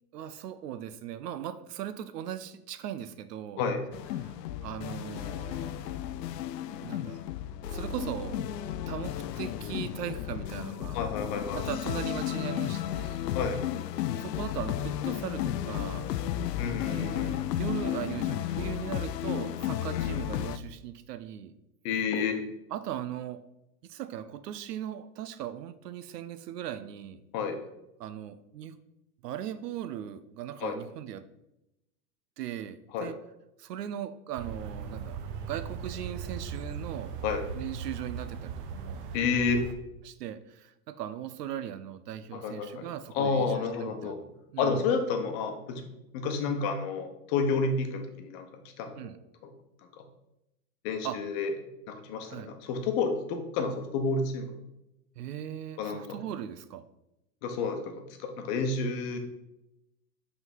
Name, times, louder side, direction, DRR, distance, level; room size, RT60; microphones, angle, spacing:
voice 1, 0.1-3.6 4.2-4.3 4.6-6.0 6.8-7.2 7.7-8.4 8.9-11.0 11.5-13.3 14.0-16.1 16.8-21.5 22.7-23.4 23.8-27.2 28.0-28.8 29.2-31.2 32.4-33.1 33.6-35.2 35.5-37.2 37.5-39.0 40.0-44.8 49.0-49.2 51.0-51.2 52.2-52.5 55.2-56.8, right 10 dB, 75° right, 13 dB, 0.7 m, -39 dB
sound 1, 3.9-20.6, left 11 dB, 85° left, 0.6 m, -33 dB
voice 2, 10.9-11.6 13.3-13.6 16.6-17.4 19.9-20.3 21.8-22.4 27.3-27.6 30.6-30.8 32.9-33.1 37.2-37.4 39.1-39.6 42.3-42.9 43.1-44.2 44.6-45.8 46.1-48.5 48.8-49.1 49.4-49.5 50.8-51.5 51.9-54.5 55.8-56.2 57.4-59.2, left 4 dB, 40° left, 5 dB, 1.1 m, -30 dB
sound 2, 34.4-39.7, right 6 dB, 35° right, 0.6 m, -38 dB
5.9 x 3.9 x 5.3 m, 0.89 s
hypercardioid pair, 135°, 48 cm